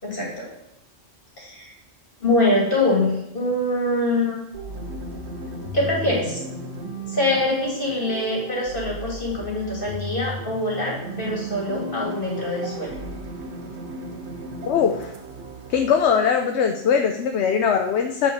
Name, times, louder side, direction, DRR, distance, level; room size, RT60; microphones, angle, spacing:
voice 1, 0.0-0.5 1.4-1.7 2.2-4.4 5.7-6.4 7.1-12.9, left 2 dB, 45° left, -3 dB, 3.0 m, -24 dB
sound 1, 4.5-13.1, equal, 35° right, 1.6 m, -35 dB
sound 2, 4.7-16.0, right 2 dB, 65° right, 1.3 m, -38 dB
voice 2, 14.7-15.1 15.7-18.3, left 7 dB, 70° left, 5 dB, 0.9 m, -21 dB
8.6 x 4.9 x 5.5 m, 0.84 s
omnidirectional pair, 1.2 m